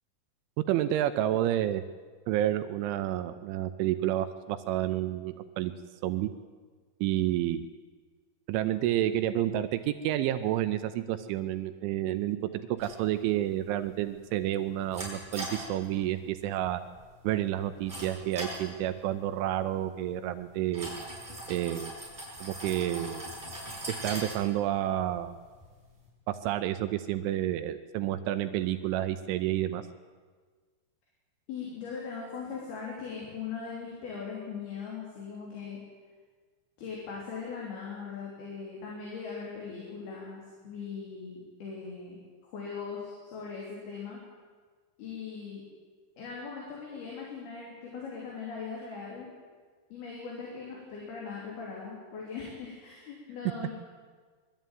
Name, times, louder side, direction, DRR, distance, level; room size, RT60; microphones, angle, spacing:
voice 1, 0.6-1.8 2.3-5.7 6.0-6.3 7.0-7.7 8.5-12.4 12.7-16.8 17.2-20.9 21.5-21.9 22.4-23.2 24.0-25.3 26.3-29.8, right 13 dB, 80° right, 10 dB, 3.1 m, -30 dB
sound 1, 12.8-26.1, right 1 dB, 5° right, 6.1 m, -43 dB
voice 2, 31.5-35.8 36.8-44.2 45.0-45.6 46.2-49.3 49.9-53.7, left 5 dB, 55° left, -3 dB, 5.0 m, -40 dB
21.5 x 13.0 x 9.2 m, 1.5 s
omnidirectional pair, 5.5 m